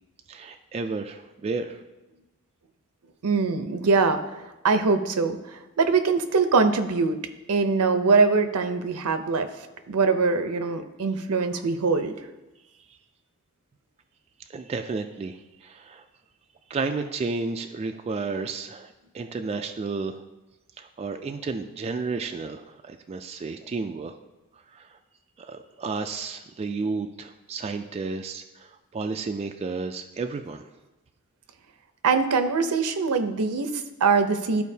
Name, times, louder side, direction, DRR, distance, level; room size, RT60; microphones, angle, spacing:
voice 1, 0.3-1.8 12.9-13.0 14.5-16.1 16.7-20.2 20.8-24.1 24.7-25.0 25.4-30.7, right 4 dB, 30° right, 6 dB, 0.3 m, -32 dB
voice 2, 3.2-7.2 7.5-9.5 9.9-12.1 32.0-34.6, right 4 dB, 80° right, 8 dB, 0.6 m, -23 dB
13.0 x 4.6 x 2.7 m, 1.1 s
head